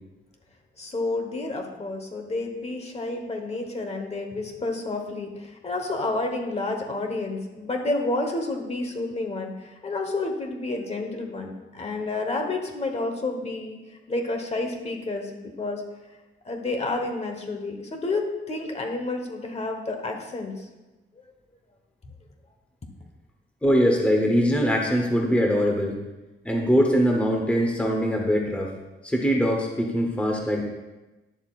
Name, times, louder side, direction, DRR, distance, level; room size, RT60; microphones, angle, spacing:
voice 1, 0.8-13.8 14.1-15.8 16.4-20.6, left 2 dB, 30° left, 3 dB, 1.2 m, -30 dB
voice 2, 23.6-26.0 26.4-28.7 29.0-30.6, equal, 5° left, 0 dB, 1.0 m, -22 dB
11.5 x 10.5 x 2.5 m, 1.1 s
wide cardioid pair, 165°, 21 cm